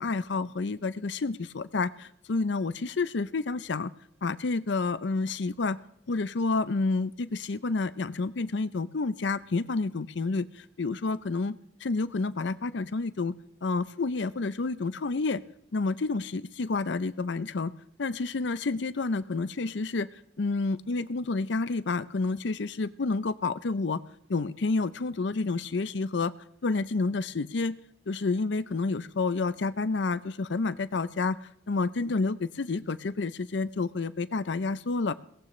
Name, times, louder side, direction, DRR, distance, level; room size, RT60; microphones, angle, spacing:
voice 1, 0.0-3.9 4.2-5.8 6.1-10.4 10.8-13.3 13.6-15.4 15.7-17.7 18.0-20.1 20.4-24.0 24.3-26.3 26.6-27.8 28.1-31.4 31.7-35.1, left 3 dB, 65° left, 15 dB, 0.5 m, -29 dB
22.0 x 17.5 x 3.2 m, 0.72 s
head